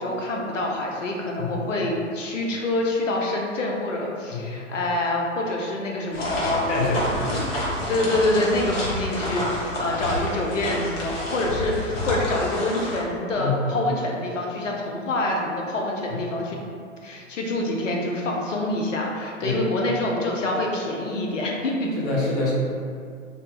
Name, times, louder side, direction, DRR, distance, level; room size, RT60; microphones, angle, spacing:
voice 1, 0.0-16.6 17.0-21.9, left 2 dB, 70° left, -1 dB, 0.6 m, -26 dB
voice 2, 4.3-4.6 6.7-7.1 9.4-9.5 13.4-13.8 16.1-16.2 19.4-19.6 21.9-22.5, left 3 dB, 25° left, -5 dB, 0.5 m, -26 dB
sound 1, 6.1-13.0, equal, 50° left, 0.9 m, -29 dB
2.8 x 2.0 x 3.2 m, 2.3 s
figure-of-eight pair, 105°, 39 cm